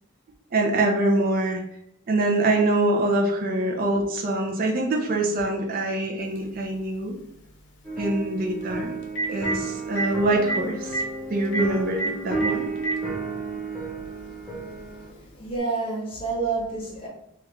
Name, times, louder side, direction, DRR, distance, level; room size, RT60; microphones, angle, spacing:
voice 1, 0.5-1.6 2.1-7.2 8.0-8.9 9.3-11.0 11.3-12.7, right 2 dB, 40° right, 2 dB, 0.4 m, -24 dB
Telephone, 6.4-6.5 8.6-8.7 9.0-9.5 10.0-10.1 10.5-10.6 10.9-11.0 11.5-11.6 12.0-12.1 12.4-13.0 14.0-14.1 15.5-15.6, right 2 dB, 55° left, 0.6 m, -26 dB
sound 1, 7.8-15.1, right 3 dB, ahead, 1.0 m, -32 dB
voice 2, 14.8-17.1, right 4 dB, 25° left, -3 dB, 0.9 m, -29 dB
3.0 x 2.3 x 3.5 m, 0.77 s
head